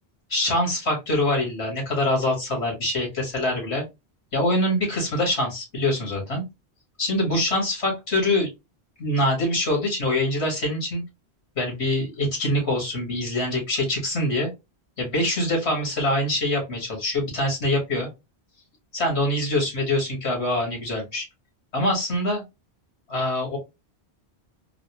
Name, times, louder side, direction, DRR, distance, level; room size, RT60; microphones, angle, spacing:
voice 1, 0.3-3.8 4.3-6.4 7.0-8.5 9.0-11.0 11.6-14.5 15.0-18.1 18.9-21.3 21.7-22.4 23.1-23.6, left 1 dB, 90° left, -1 dB, 2.1 m, -24 dB
4.0 x 2.1 x 2.8 m, 0.23 s
omnidirectional pair, 1.1 m